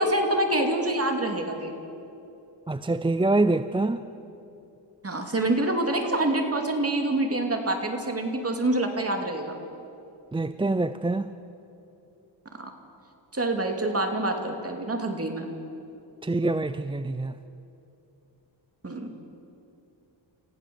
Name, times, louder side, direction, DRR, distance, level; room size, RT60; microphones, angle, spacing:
voice 1, 0.0-1.7 5.0-9.6 12.6-12.7 13.3-15.5 18.8-19.1, right 1 dB, 30° right, 4 dB, 2.7 m, -26 dB
voice 2, 2.7-4.0 10.3-11.3 16.2-17.3, right 2 dB, 10° right, 12 dB, 0.4 m, -25 dB
29.5 x 15.0 x 7.1 m, 2.7 s
wide cardioid pair, 105°, 45 cm